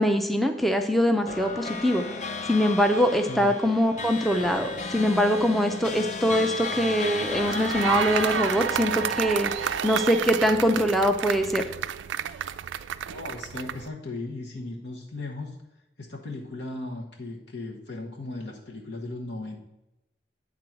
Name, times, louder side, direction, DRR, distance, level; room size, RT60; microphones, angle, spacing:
voice 1, 0.0-2.0 2.5-11.7, equal, ahead, 5 dB, 0.4 m, -23 dB
sound 1, 1.3-10.9, left 3 dB, 40° left, 0.6 m, -34 dB
sound 2, 7.2-13.9, right 9 dB, 85° right, 0.3 m, -30 dB
voice 2, 13.1-15.6 16.0-19.6, left 2 dB, 70° left, 0 dB, 1.0 m, -36 dB
9.2 x 3.8 x 5.9 m, 0.96 s
head